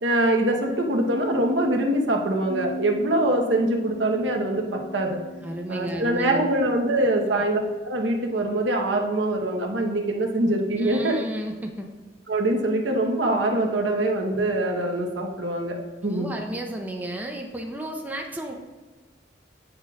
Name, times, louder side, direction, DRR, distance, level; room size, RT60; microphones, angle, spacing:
voice 1, 0.0-5.2 5.7-11.2 12.3-16.3, right 1 dB, 90° right, 2 dB, 0.9 m, -24 dB
sound 1, 2.5-7.8, right 1 dB, 50° left, 0.6 m, -40 dB
voice 2, 5.4-6.5 7.2-7.4 10.8-11.9 16.0-18.5, right 1 dB, 10° right, 1 dB, 0.5 m, -33 dB
8.5 x 6.5 x 2.3 m, 1.3 s
head